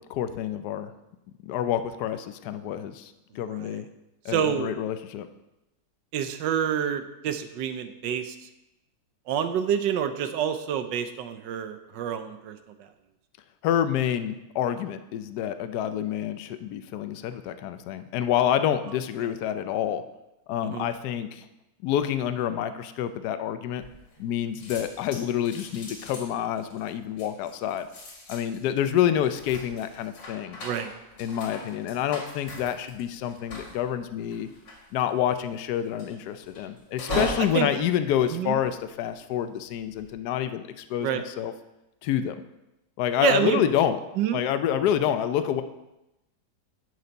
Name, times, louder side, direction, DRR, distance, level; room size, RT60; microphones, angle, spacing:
voice 1, 0.1-0.9 1.4-3.9 4.2-5.3 13.6-20.0 20.5-21.5 21.8-23.8 24.2-27.9 28.3-30.6 31.2-34.5 34.9-41.5 42.0-42.3 43.0-44.0 44.3-45.6, left 10 dB, 70° left, 10 dB, 1.1 m, -27 dB
voice 2, 3.5-3.8 4.3-4.7 6.1-8.4 9.3-12.9 20.6-20.9 30.6-30.9 37.1-37.7 38.3-38.6 41.0-41.2 43.2-43.6 44.2-44.4, right 9 dB, 80° right, 9 dB, 1.4 m, -28 dB
sound 1, 23.8-24.3 24.6-39.1 39.7-40.1, left 2 dB, 85° left, 2.7 m, -40 dB
10.5 x 6.9 x 4.0 m, 0.93 s
omnidirectional pair, 1.9 m